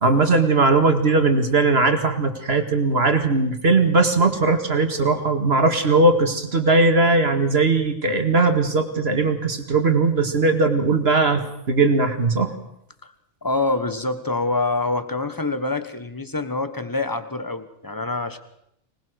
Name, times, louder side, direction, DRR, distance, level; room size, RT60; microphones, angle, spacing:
voice 1, 0.0-12.5, right 3 dB, 50° right, 6 dB, 2.2 m, -19 dB
voice 2, 13.4-18.4, left 2 dB, 15° left, 10 dB, 1.3 m, -25 dB
25.0 x 20.0 x 6.4 m, 0.76 s
omnidirectional pair, 1.4 m